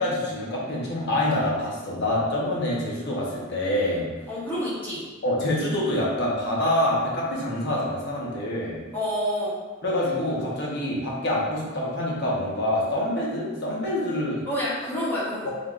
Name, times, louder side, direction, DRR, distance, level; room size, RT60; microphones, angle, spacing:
voice 1, 0.0-4.1 5.2-8.8 9.8-14.4 15.4-15.5, left 1 dB, 55° left, -4 dB, 0.9 m, -26 dB
voice 2, 4.3-5.0 8.9-9.6 14.5-15.5, equal, 10° left, -9 dB, 1.0 m, -28 dB
3.5 x 3.4 x 2.5 m, 1.3 s
head